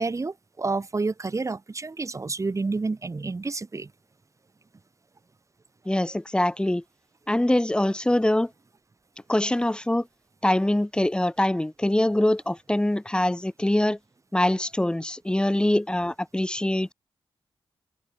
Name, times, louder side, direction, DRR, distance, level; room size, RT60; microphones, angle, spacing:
voice 1, 0.0-3.9, right 3 dB, 35° right, 3.7 m, -29 dB
voice 2, 5.8-6.8 7.3-8.5 9.3-10.0 10.4-14.0 14.3-16.9, left 1 dB, 10° left, 3.2 m, -23 dB
open air
wide cardioid pair, 100°, 9 cm